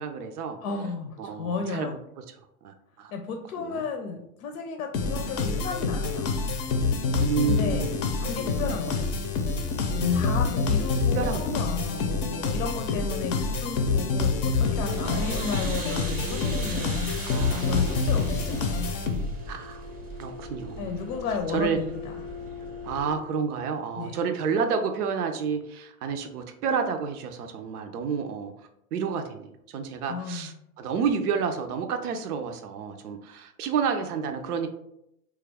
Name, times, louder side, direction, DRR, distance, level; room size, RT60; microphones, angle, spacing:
voice 1, 0.0-0.6 1.2-2.0 2.6-3.1 3.6-3.8 7.2-8.0 8.4-8.8 9.9-10.4 11.1-12.1 17.2-18.0 18.3-18.4 19.5-19.8 20.2-20.9 21.5-21.8 22.8-28.5 28.9-29.5 29.7-34.7, right 6 dB, 80° right, 6 dB, 0.6 m, -30 dB
voice 2, 0.6-2.0 3.1-6.4 7.4-7.9 8.2-9.1 10.1-18.9 20.8-22.2 24.0-24.2 30.1-30.5, left 5 dB, 75° left, 5 dB, 0.6 m, -34 dB
sound 1, 4.9-19.5, left 4 dB, 35° left, 0.5 m, -27 dB
sound 2, 14.6-23.1, right 2 dB, 20° right, 0.6 m, -38 dB
3.0 x 2.3 x 3.4 m, 0.80 s
hypercardioid pair, 105°, 45 cm